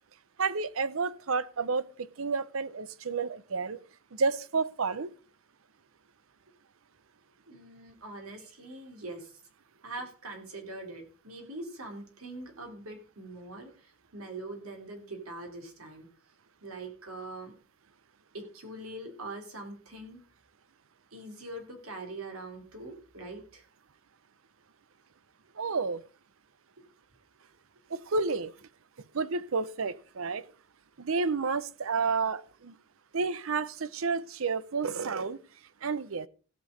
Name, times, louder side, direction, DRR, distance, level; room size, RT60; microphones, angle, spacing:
voice 1, 0.4-3.8 4.1-5.1 25.6-26.0 27.9-28.5 29.1-30.5 31.0-32.8 33.1-35.4 35.8-36.3, right 4 dB, 70° right, 0.7 m, -30 dB
voice 2, 7.5-9.4 9.8-16.1 16.6-17.5 18.3-20.2 21.1-23.6, right 2 dB, 85° right, 3.3 m, -43 dB
16.5 x 6.2 x 5.2 m
head